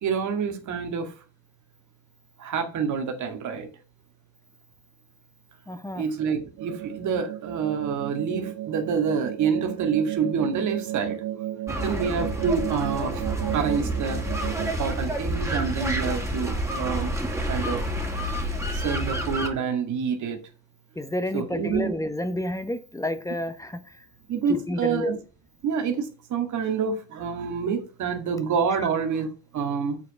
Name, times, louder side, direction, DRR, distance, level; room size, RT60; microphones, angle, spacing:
voice 1, 0.0-1.1 2.4-3.7 6.0-11.2 11.8-13.3 13.5-14.2 14.6-17.1 17.5-17.8 18.7-20.4 21.3-21.9 24.3-25.2 25.6-29.3 29.5-30.0, right 6 dB, 75° right, 2.2 m, -27 dB
voice 2, 5.7-6.0 20.9-23.8 24.5-25.1, left 1 dB, 10° left, 1.3 m, -29 dB
sound 1, 6.6-14.7, right 13 dB, 90° right, 0.6 m, -34 dB
sound 2, 11.7-19.5, right 1 dB, 10° right, 2.7 m, -29 dB
8.3 x 5.0 x 7.0 m
cardioid pair, 90°, 30 cm